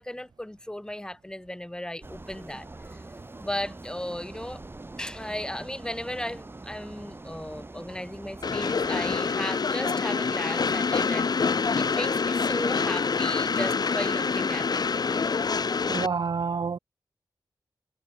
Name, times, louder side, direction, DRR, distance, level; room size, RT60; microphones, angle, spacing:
voice 1, 0.0-2.7 3.4-4.6 5.0-11.3 11.8-14.9, left 1 dB, 10° left, 6.1 m, -35 dB
sound 1, 2.0-9.2, right 2 dB, 30° right, 4.1 m, -43 dB
Train, 8.4-16.1, left 5 dB, 55° left, 1.3 m, -26 dB
voice 2, 15.9-16.8, right 5 dB, 65° right, 1.4 m, -28 dB
wide cardioid pair, 80°, 8 cm